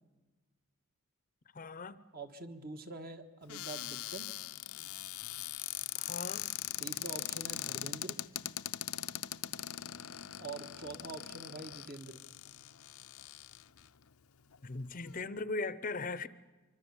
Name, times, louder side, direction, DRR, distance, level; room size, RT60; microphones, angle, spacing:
voice 1, 1.5-2.0 5.9-6.5 14.6-16.3, left 3 dB, 40° left, 0.7 m, -38 dB
voice 2, 2.1-4.3 6.8-8.2 10.4-12.2, right 3 dB, 45° right, 1.7 m, -45 dB
Cupboard open or close, 3.5-13.9 14.5-14.6 14.9-15.2, left 13 dB, 80° left, 0.7 m, -41 dB
25.0 x 24.5 x 7.2 m
head